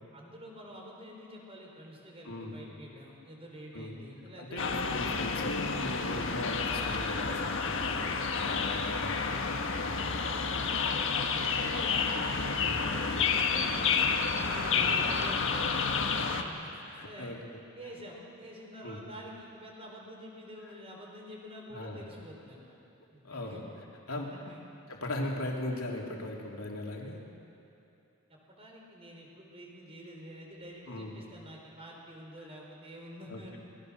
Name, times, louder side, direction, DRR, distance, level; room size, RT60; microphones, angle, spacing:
voice 1, 0.1-4.9 8.8-9.1 9.9-12.5 12.9-14.1 14.4-16.6 17.0-17.3 17.7-22.7 23.1-23.6 24.1-24.6 28.3-33.6, equal, 25° right, -1 dB, 4.8 m, -48 dB
voice 2, 2.2-2.6 3.7-4.0 4.4-9.2 9.8-10.1 12.6-13.3 14.7-14.9 15.9-16.2 16.7-17.6 18.8-19.0 20.6-20.7 21.7-22.0 23.2-23.6 24.1-24.3 24.9-27.2 30.9-31.1 33.3-33.6, left 1 dB, 80° left, -1 dB, 3.3 m, -39 dB
sound 1, 4.6-16.4, left 5 dB, 60° left, 1.5 m, -30 dB
26.5 x 21.0 x 6.6 m, 2.8 s
head